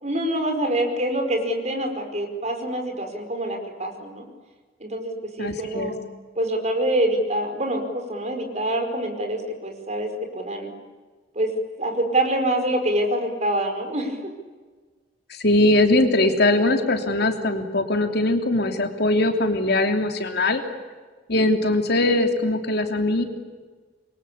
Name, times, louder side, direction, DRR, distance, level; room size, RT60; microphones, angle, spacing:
voice 1, 0.0-4.3 4.8-5.9 6.3-10.7 11.3-11.5 11.8-14.2, right 1 dB, 35° right, 4 dB, 5.1 m, -25 dB
voice 2, 5.4-5.9 15.3-20.6 21.3-23.2, left 2 dB, 55° left, 5 dB, 3.0 m, -21 dB
28.0 x 23.5 x 8.6 m, 1.4 s
head